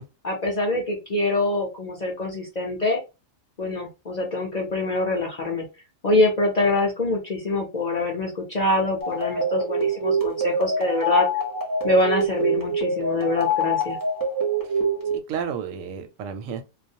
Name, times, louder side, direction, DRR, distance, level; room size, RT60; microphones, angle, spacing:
voice 1, 0.2-3.0 3.6-5.6 6.0-11.3 11.8-14.0, left 2 dB, 50° left, 0.5 m, -24 dB
sound 1, 9.0-15.2, right 1 dB, 25° right, 0.5 m, -25 dB
voice 2, 15.1-16.6, right 7 dB, 90° right, 1.0 m, -32 dB
2.4 x 2.0 x 2.6 m
omnidirectional pair, 1.3 m